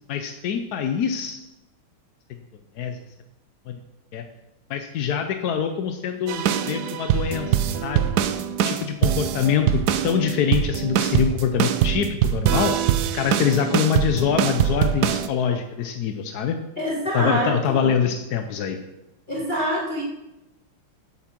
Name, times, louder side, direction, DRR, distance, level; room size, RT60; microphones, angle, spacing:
voice 1, 0.1-1.4 2.8-3.0 3.7-3.8 4.1-4.2 4.7-8.1 8.6-12.7 13.1-16.6 17.1-18.8, left 8 dB, 65° left, 6 dB, 1.0 m, -24 dB
sound 1, 6.3-15.3, right 10 dB, 75° right, 0.9 m, -23 dB
voice 2, 16.8-18.0 19.3-20.0, equal, 25° left, -3 dB, 1.5 m, -26 dB
8.5 x 8.2 x 6.0 m, 0.95 s
omnidirectional pair, 2.4 m